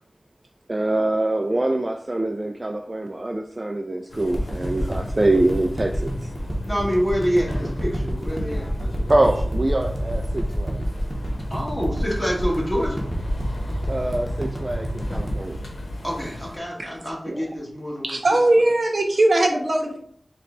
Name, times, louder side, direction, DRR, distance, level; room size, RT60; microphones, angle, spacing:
voice 1, 0.7-6.3 9.1-10.8 13.9-15.6 17.3-17.5, right 2 dB, 35° right, 0.3 m, -24 dB
sound 1, 4.1-16.6, left 1 dB, 85° left, 0.8 m, -37 dB
sound 2, 4.3-16.7 17.1-17.2, equal, 10° right, 1.1 m, -28 dB
voice 2, 6.7-9.1 11.5-13.0 16.0-18.2, equal, 15° left, 1.6 m, -27 dB
voice 3, 18.0-20.0, right 2 dB, 60° right, 0.8 m, -19 dB
4.1 x 2.3 x 3.9 m
wide cardioid pair, 55°, 0 cm